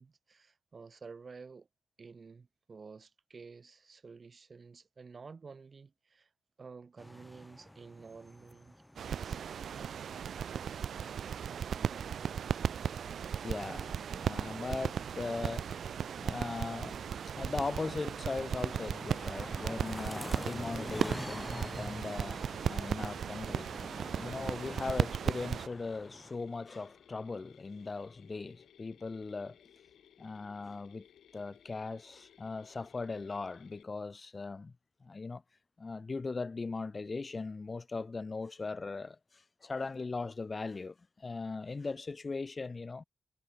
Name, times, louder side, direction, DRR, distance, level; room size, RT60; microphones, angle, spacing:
voice 1, 0.0-1.7 2.0-6.3 6.6-9.4, right 4 dB, 50° right, 1.0 m, -51 dB
sound 1, 7.0-26.4, left 1 dB, 5° left, 0.8 m, -49 dB
sound 2, 9.0-25.7, right 8 dB, 70° right, 0.5 m, -36 dB
voice 2, 13.4-29.6 30.2-31.1 31.3-34.7 35.0-35.4 35.8-43.0, left 3 dB, 40° left, 0.5 m, -39 dB
Mechanisms, 18.8-33.8, left 9 dB, 80° left, 4.8 m, -61 dB
cardioid pair, 60°, 0 cm